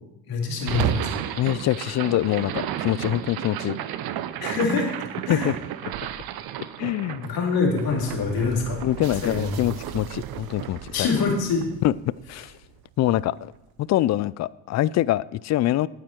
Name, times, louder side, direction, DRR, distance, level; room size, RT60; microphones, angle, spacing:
voice 1, 0.3-1.2 4.4-4.9 5.3-5.5 7.2-8.8 9.2-9.5 10.9-11.7, left 4 dB, 60° left, 3.5 m, -25 dB
sound 1, 0.6-12.8, right 11 dB, 60° right, 0.8 m, -33 dB
voice 2, 1.4-3.8 5.3-5.6 6.8-7.3 8.8-11.1 11.8-11.9 12.3-12.6 13.0-13.5 13.8-15.9, left 14 dB, 45° left, 0.4 m, -24 dB
10.0 x 9.1 x 4.5 m
hypercardioid pair, 60°, 41 cm